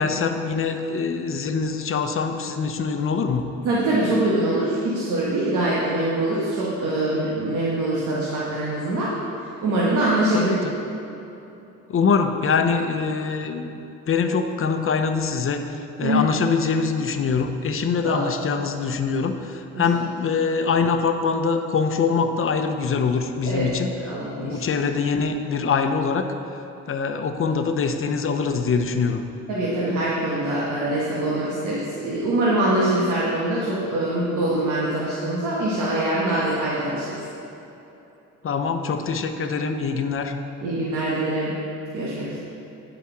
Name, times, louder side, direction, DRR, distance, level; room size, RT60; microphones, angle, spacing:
voice 1, 0.0-3.6 10.3-10.8 11.9-13.7 14.1-23.9 24.4-26.3 26.9-29.2 38.4-40.4, left 5 dB, 45° left, 6 dB, 0.8 m, -24 dB
voice 2, 3.6-9.1 9.6-10.6 16.0-16.2 18.0-18.2 19.7-19.9 23.5-23.7 24.0-24.6 29.5-37.2 40.6-41.5 41.9-42.4, right 1 dB, 75° right, -7 dB, 1.7 m, -23 dB
11.5 x 5.1 x 5.8 m, 3.0 s
cardioid pair, 90°, 30 cm